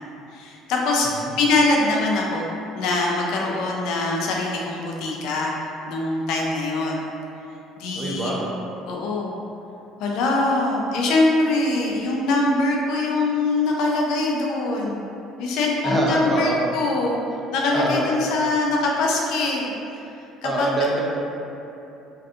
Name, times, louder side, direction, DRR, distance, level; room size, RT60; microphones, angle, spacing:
voice 1, 0.3-1.1 1.4-2.5 2.8-5.5 5.9-7.0 7.8-8.3 8.9-9.4 10.0-15.0 15.4-17.2 17.5-19.7 20.4-20.7, left 2 dB, 70° left, -1 dB, 0.4 m, -23 dB
voice 2, 7.9-8.5 15.8-16.6 17.7-18.1 20.4-21.0, right 1 dB, 15° right, -4 dB, 0.4 m, -24 dB
2.6 x 2.3 x 2.4 m, 2.8 s
cardioid pair, 135°, 0 cm